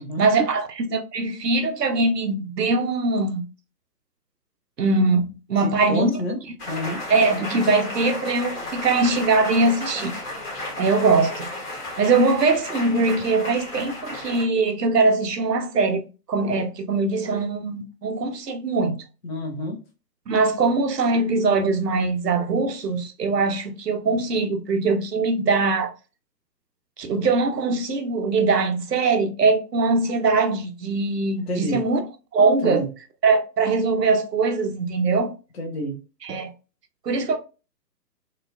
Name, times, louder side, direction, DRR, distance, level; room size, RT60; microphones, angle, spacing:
voice 1, 0.2-3.5 4.8-6.1 7.1-10.2 10.8-11.5 12.0-19.0 20.3-25.9 27.0-32.0 32.3-32.8 33.2-35.3 36.2-36.5 37.0-37.4, right 3 dB, 70° right, 0.7 m, -22 dB
voice 2, 5.6-6.4 6.7-7.0 19.2-19.8 31.5-31.9 32.6-32.9 35.6-36.0, equal, 40° left, 0.6 m, -28 dB
sound 1, 6.6-14.4, left 1 dB, 15° left, 0.9 m, -33 dB
3.2 x 2.3 x 2.3 m
figure-of-eight pair, 125°, 50 cm